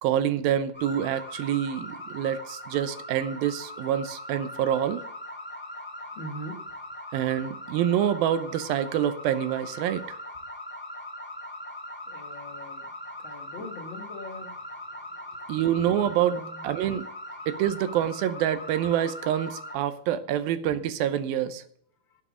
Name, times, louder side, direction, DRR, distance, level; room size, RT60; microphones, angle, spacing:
voice 1, 0.0-5.0 7.1-10.2 15.5-17.1 17.5-21.6, right 10 dB, 80° right, 12 dB, 2.5 m, -26 dB
sound 1, 0.7-19.8, left 1 dB, 5° left, 1.2 m, -40 dB
voice 2, 6.2-6.6 12.1-12.8 13.2-14.5 16.3-16.6, left 1 dB, 60° left, 4 dB, 1.2 m, -41 dB
11.0 x 7.3 x 8.0 m, 0.67 s
omnidirectional pair, 4.3 m